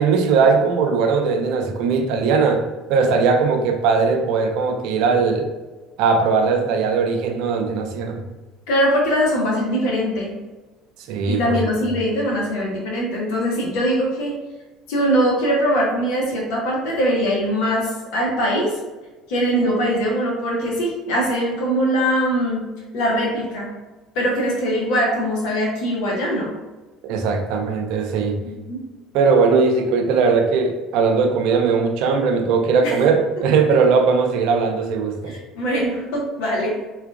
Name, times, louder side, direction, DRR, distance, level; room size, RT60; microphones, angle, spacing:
voice 1, 0.0-2.6 2.9-5.5 6.0-8.2 11.1-11.9 27.0-28.4 29.1-35.3, right 5 dB, 70° right, 4 dB, 0.4 m, -19 dB
voice 2, 8.7-10.3 11.3-14.3 14.9-18.7 19.3-22.6 22.9-23.7 24.1-26.5 28.4-28.8 32.8-32.9 35.3-36.8, equal, 75° left, -2 dB, 1.0 m, -21 dB
3.6 x 2.4 x 2.4 m, 1.2 s
hypercardioid pair, 75°, 0 cm